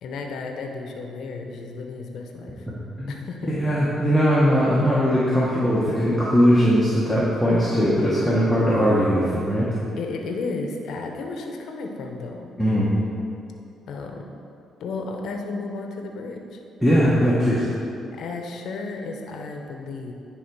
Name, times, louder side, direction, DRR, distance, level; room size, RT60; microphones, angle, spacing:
voice 1, 0.0-2.7 3.1-3.7 9.7-12.5 13.9-14.3 14.8-16.6 17.2-17.5 18.1-20.1, left 3 dB, 75° left, 3 dB, 0.7 m, -33 dB
voice 2, 3.6-9.7 12.6-12.9 16.8-17.7, equal, ahead, -8 dB, 1.1 m, -20 dB
9.6 x 3.5 x 4.6 m, 2.6 s
cardioid pair, 90°, 0 cm